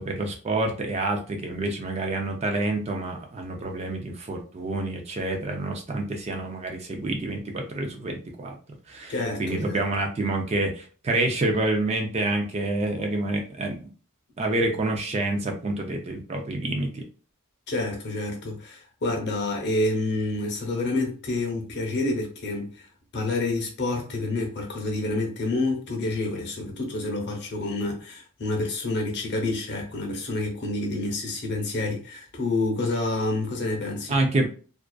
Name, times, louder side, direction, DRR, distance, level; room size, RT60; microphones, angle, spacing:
voice 1, 0.0-8.5 8.9-9.1 9.4-13.9 14.4-17.0 34.1-34.5, right 2 dB, 30° right, 0.4 m, -27 dB
voice 2, 9.1-9.8 17.7-34.2, left 2 dB, 50° left, 0.7 m, -28 dB
2.4 x 2.3 x 2.2 m
head